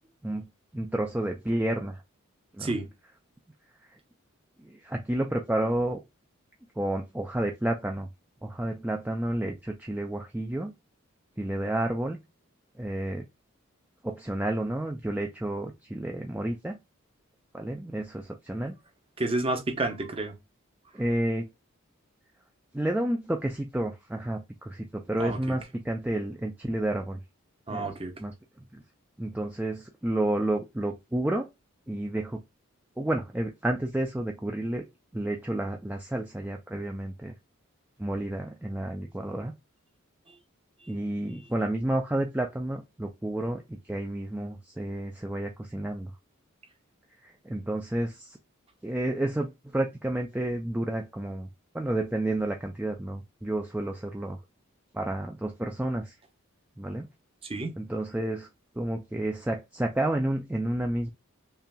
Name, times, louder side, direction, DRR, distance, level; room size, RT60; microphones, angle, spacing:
voice 1, 0.7-2.0 2.5-2.8 3.9-4.0 4.6-6.0 6.8-8.1 8.4-10.7 11.4-12.2 12.8-13.2 14.0-16.8 17.5-18.8 20.9-21.5 22.7-27.2 27.7-27.9 28.2-28.3 28.7-28.8 29.2-31.5 31.9-32.4 33.0-34.8 35.1-37.3 38.0-39.5 40.9-46.1 47.2-48.4 48.8-51.5 51.7-54.4 54.9-56.2 56.8-57.1 57.8-58.5 58.8-61.1, right 1 dB, 5° right, 0.3 m, -30 dB
voice 2, 19.2-20.3 25.2-25.4 27.7-28.1 57.5-57.7, right 2 dB, 25° right, 0.8 m, -29 dB
5.5 x 2.5 x 2.2 m
head